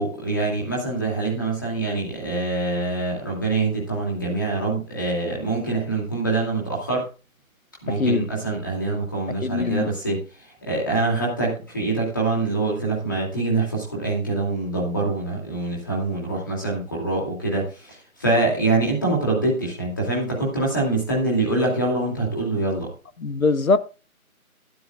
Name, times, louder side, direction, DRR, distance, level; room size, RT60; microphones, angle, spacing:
voice 1, 0.0-7.0 7.8-10.2 10.6-22.9, right 3 dB, 15° left, 2.7 m, -24 dB
voice 2, 9.4-9.9 23.2-23.8, left 4 dB, 70° left, 1.2 m, -21 dB
15.5 x 12.0 x 2.4 m
figure-of-eight pair, 180°, 43 cm